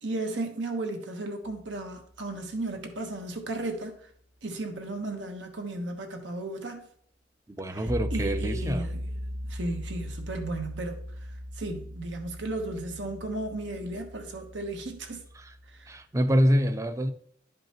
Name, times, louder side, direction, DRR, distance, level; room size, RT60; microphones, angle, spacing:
voice 1, 0.0-4.1 4.4-6.9 7.7-9.1 9.5-11.0 11.5-15.2 15.7-15.9, right 2 dB, 85° right, 1.1 m, -35 dB
sound 1, 1.5-1.9 7.9-16.0, equal, 40° right, 0.9 m, -38 dB
voice 2, 7.5-9.0 15.4-15.5 15.9-17.1, equal, 15° right, 0.4 m, -26 dB
11.0 x 5.1 x 3.0 m
head